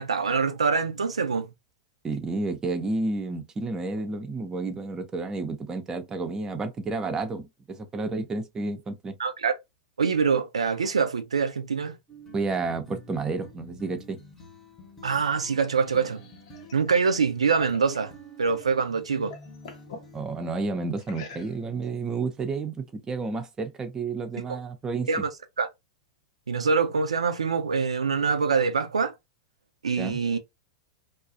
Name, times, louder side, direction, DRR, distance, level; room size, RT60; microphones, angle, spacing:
voice 1, 0.0-1.5 9.2-9.6 10.0-12.0 15.0-16.2 16.7-18.1 18.4-19.3 24.4-24.5 25.1-25.3 25.6-25.7 26.5-29.1 29.8-30.4, right 5 dB, 85° right, 0.3 m, -25 dB
voice 2, 2.0-9.1 12.3-14.2 20.1-25.1 30.0-30.2, right 3 dB, 20° right, 0.5 m, -31 dB
sound 1, 12.1-20.2, equal, 10° left, 0.8 m, -49 dB
sound 2, 15.5-18.7 19.0-20.1 21.0-21.8, left 4 dB, 60° left, 0.6 m, -47 dB
2.3 x 2.0 x 2.6 m
hypercardioid pair, 100°, 3 cm